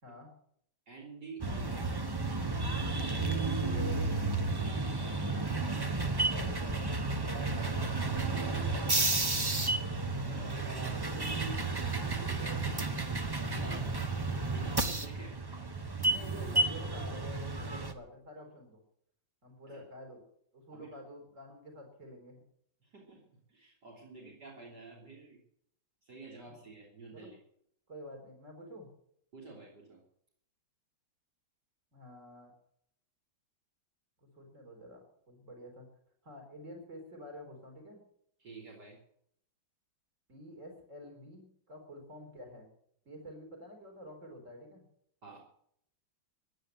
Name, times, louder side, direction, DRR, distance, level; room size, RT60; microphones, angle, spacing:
voice 1, 0.0-0.3 3.3-4.1 5.3-8.1 10.8-11.6 12.3-13.0 13.4-14.0 16.1-18.8 19.4-20.2 20.5-22.4 24.1-24.4 27.1-27.3 27.9-28.9 31.9-32.5 34.2-35.9 36.2-38.0 40.3-42.7 43.0-44.8, equal, 40° right, 2 dB, 4.7 m, -49 dB
voice 2, 0.9-2.1 2.6-3.4 4.6-4.8 8.1-11.4 12.0-12.6 13.5-15.4 16.0-16.2 19.7-19.8 20.7-21.0 22.8-25.4 26.0-27.4 29.3-30.0 38.4-39.0 45.2-45.4, right 4 dB, 55° right, -3 dB, 4.0 m, -50 dB
sound 1, 1.4-17.9, right 3 dB, 20° right, 0.7 m, -32 dB
16.0 x 10.5 x 7.7 m, 0.69 s
omnidirectional pair, 2.1 m